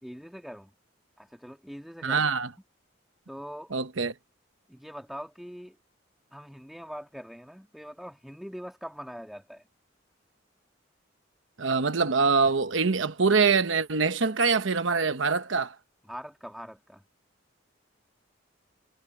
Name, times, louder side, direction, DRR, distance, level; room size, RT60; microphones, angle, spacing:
voice 1, 0.0-0.7 1.2-2.3 3.3-3.7 4.7-5.8 6.3-9.7 16.0-17.0, equal, ahead, 1.9 m, -42 dB
voice 2, 2.0-2.5 3.7-4.1 11.6-15.7, right 4 dB, 80° right, 1.0 m, -24 dB
head